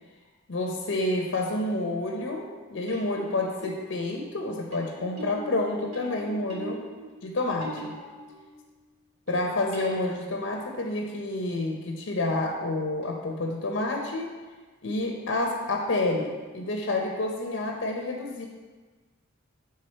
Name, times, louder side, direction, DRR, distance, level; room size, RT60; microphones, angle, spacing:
voice 1, 0.5-6.8 7.2-7.9 9.3-14.3 14.8-18.5, left 2 dB, 65° left, 1 dB, 0.7 m, -29 dB
sound 1, 1.1-1.5 2.9-8.8 9.3-10.6 13.0-13.1, right 1 dB, 70° right, 1.5 m, -42 dB
7.8 x 3.5 x 4.4 m, 1.3 s
head